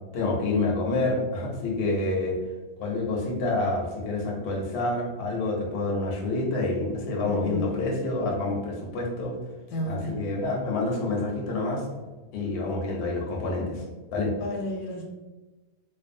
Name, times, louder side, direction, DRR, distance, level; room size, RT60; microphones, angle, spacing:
voice 1, 0.1-2.4 2.8-9.3 9.8-11.8 12.3-13.8 14.1-14.3, left 2 dB, 60° left, -1 dB, 0.8 m, -28 dB
voice 2, 7.2-7.7 9.7-10.2 14.4-15.0, left 1 dB, 85° left, 1 dB, 1.1 m, -32 dB
2.5 x 2.3 x 2.5 m, 1.2 s
omnidirectional pair, 1.6 m